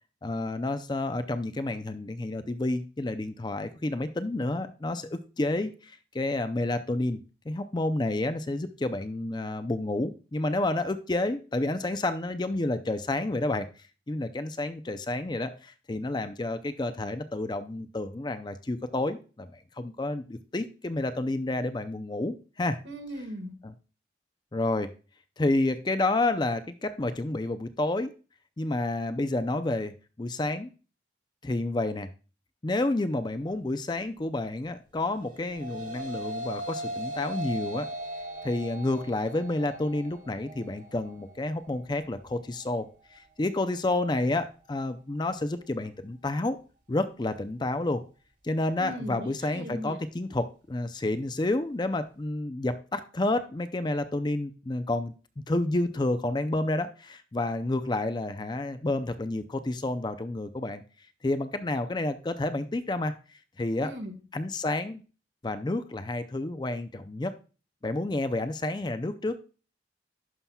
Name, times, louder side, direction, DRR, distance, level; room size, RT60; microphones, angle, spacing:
voice 1, 0.2-13.7 14.1-22.8 23.6-23.7 24.5-24.9 25.4-28.1 28.6-30.7 31.4-32.1 32.6-37.9 38.4-46.6 46.9-48.0 48.4-55.1 55.5-60.8 61.2-63.1 63.6-63.9 64.3-65.0 65.4-67.3 67.8-69.4, left 2 dB, 25° left, 10 dB, 0.5 m, -30 dB
voice 2, 22.8-23.5 48.8-50.0 63.8-64.2, equal, 70° right, 4 dB, 1.7 m, -38 dB
sound 1, 35.1-44.3, right 1 dB, 45° right, 2.0 m, -39 dB
11.0 x 5.7 x 2.3 m, 0.34 s
head